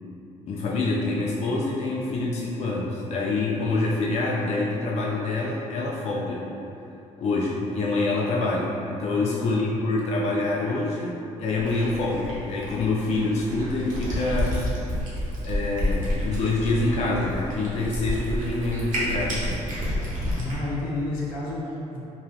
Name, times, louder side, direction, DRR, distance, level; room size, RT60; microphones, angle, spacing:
voice 1, 0.5-6.5 7.2-14.6 15.4-19.5, left 2 dB, 50° left, -4 dB, 0.4 m, -26 dB
Cat, 11.6-20.6, equal, 65° right, 0.8 m, -30 dB
voice 2, 20.0-22.0, left 2 dB, 80° left, -6 dB, 0.7 m, -31 dB
3.0 x 2.3 x 2.3 m, 2.9 s
supercardioid pair, 65°, 14 cm